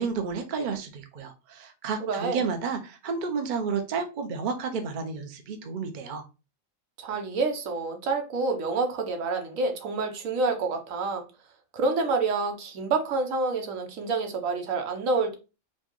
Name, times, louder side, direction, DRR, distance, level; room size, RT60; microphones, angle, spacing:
voice 1, 0.0-6.2, right 5 dB, 50° right, 0.6 m, -31 dB
voice 2, 2.0-2.4 7.0-11.2 11.7-15.3, right 3 dB, 80° right, 1.1 m, -28 dB
4.3 x 2.1 x 2.9 m
omnidirectional pair, 1.4 m